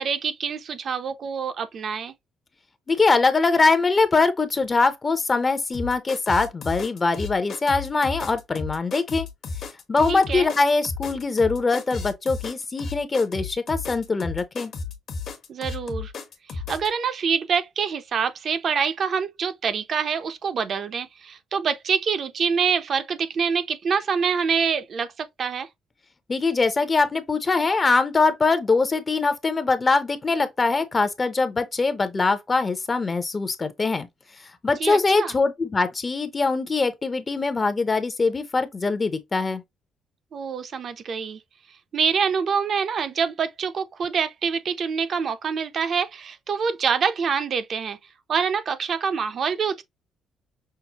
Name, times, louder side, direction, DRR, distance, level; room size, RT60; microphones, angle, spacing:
voice 1, 0.0-2.1 10.1-10.5 15.5-16.1 16.5-25.7 34.8-35.3 40.3-41.4 41.9-48.0 48.3-49.8, right 6 dB, 55° right, 0.6 m, -26 dB
voice 2, 2.9-9.3 9.9-14.7 26.3-34.1 34.6-39.6, left 3 dB, 30° left, 0.6 m, -22 dB
sound 1, 5.7-16.9, left 4 dB, 60° left, 1.1 m, -33 dB
5.7 x 2.1 x 2.8 m
cardioid pair, 90°, 0 cm